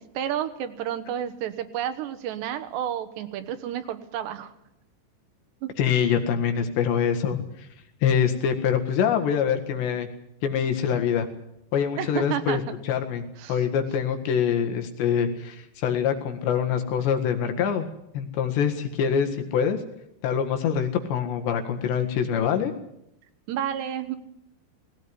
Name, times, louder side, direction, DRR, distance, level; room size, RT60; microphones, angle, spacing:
voice 1, 0.0-4.5 5.6-5.7 12.0-12.8 13.4-13.6 23.5-24.2, right 10 dB, 75° right, 10 dB, 3.4 m, -31 dB
voice 2, 5.8-7.4 8.0-10.1 10.4-11.3 11.7-13.2 13.5-17.9 18.1-19.8 20.2-22.7, left 7 dB, 75° left, 6 dB, 4.0 m, -24 dB
18.5 x 17.5 x 9.7 m, 0.80 s
omnidirectional pair, 5.1 m